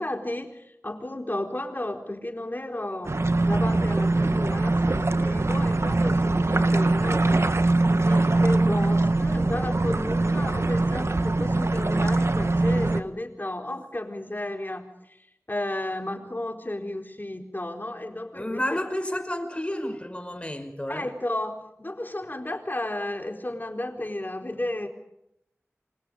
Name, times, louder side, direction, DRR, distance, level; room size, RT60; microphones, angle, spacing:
voice 1, 0.0-7.6 8.0-18.8 20.9-24.9, left 1 dB, 40° left, 3 dB, 4.3 m, -33 dB
sound 1, 3.0-13.0, right 2 dB, 65° right, 1.2 m, -22 dB
voice 2, 18.3-21.1, left 1 dB, 25° left, 7 dB, 5.4 m, -31 dB
27.5 x 25.0 x 5.2 m, 0.80 s
wide cardioid pair, 50°, 5 cm